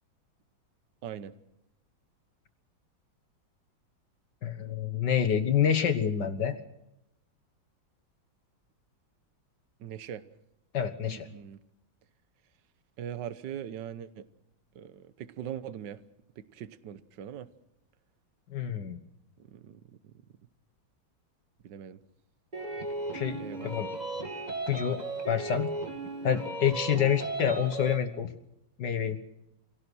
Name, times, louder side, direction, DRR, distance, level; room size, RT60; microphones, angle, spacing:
voice 1, 1.0-1.3 9.8-10.2 11.0-11.6 13.0-14.3 14.8-16.0 16.4-17.5 19.4-20.2 21.6-22.0 23.4-23.9 26.9-27.1, right 9 dB, 65° right, 14 dB, 1.6 m, -41 dB
voice 2, 4.4-6.6 10.7-11.3 18.5-19.0 23.1-23.9 24.7-25.7 26.2-28.3 28.8-29.2, left 8 dB, 60° left, 10 dB, 1.8 m, -28 dB
sound 1, 22.5-28.0, right 2 dB, 20° right, 2.6 m, -36 dB
25.0 x 17.5 x 6.3 m, 0.83 s
omnidirectional pair, 2.2 m